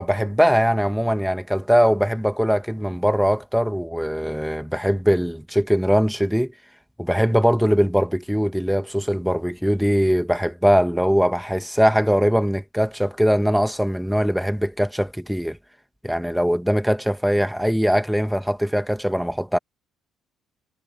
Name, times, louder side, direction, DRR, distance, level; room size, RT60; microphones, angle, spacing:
voice 1, 0.0-6.5 7.0-15.6 16.0-19.6, equal, ahead, 2.2 m, -21 dB
hypercardioid pair, 55°, 0 cm